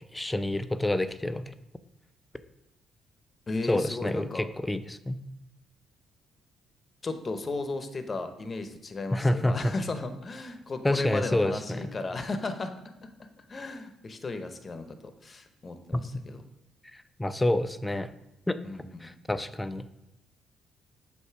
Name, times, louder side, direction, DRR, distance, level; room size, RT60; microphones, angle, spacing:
voice 1, 0.1-1.5 3.7-5.2 9.1-9.6 10.8-11.9 15.9-16.0 16.8-18.1 18.5-19.9, left 1 dB, 15° left, 11 dB, 0.5 m, -28 dB
voice 2, 3.5-4.5 7.0-12.7 13.0-14.9 15.2-16.4 18.6-19.1, left 3 dB, 40° left, 8 dB, 0.8 m, -35 dB
8.1 x 2.7 x 5.7 m, 0.92 s
supercardioid pair, 70°, 0 cm